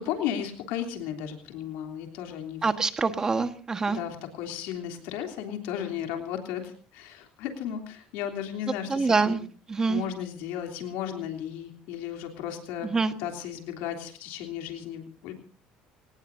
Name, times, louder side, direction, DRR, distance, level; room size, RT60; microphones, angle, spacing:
voice 1, 0.0-2.7 3.9-9.4 9.9-12.9 13.2-15.3, left 9 dB, 85° left, 4 dB, 3.2 m, -35 dB
voice 2, 2.6-4.0 8.9-9.4 9.7-10.0 12.8-13.1, right 4 dB, 20° right, 8 dB, 1.4 m, -25 dB
26.5 x 18.5 x 2.7 m, 0.39 s
cardioid pair, 135°, 3 cm